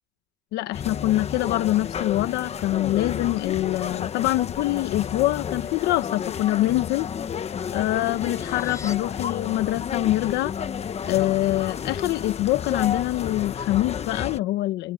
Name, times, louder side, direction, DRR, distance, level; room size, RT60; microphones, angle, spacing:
voice 1, 0.5-7.1 7.7-10.5 11.1-14.9, left 16 dB, 90° left, 1.0 m, -24 dB
sound 1, 0.7-14.4, left 7 dB, 40° left, 1.1 m, -31 dB
sound 2, 6.7-9.0, left 3 dB, 15° left, 6.8 m, -47 dB
cardioid pair, 110°, 17 cm